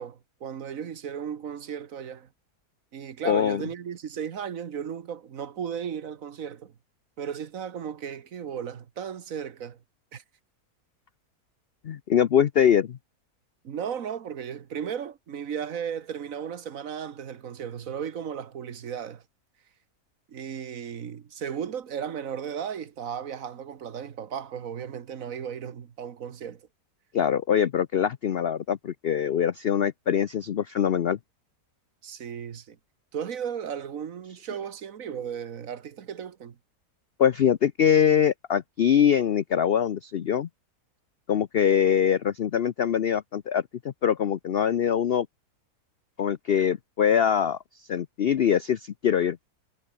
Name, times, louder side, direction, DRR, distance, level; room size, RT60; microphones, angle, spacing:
voice 1, 0.0-2.3 2.9-6.7 7.2-9.8 10.1-10.2 13.6-19.2 20.3-26.6 32.0-32.8 33.1-36.6, right 8 dB, 60° right, 1.6 m, -35 dB
voice 2, 3.2-3.6 11.8-13.0 27.1-31.2 37.2-40.5 41.3-45.3 46.2-49.5, left 8 dB, 60° left, 0.6 m, -23 dB
omnidirectional pair, 1.7 m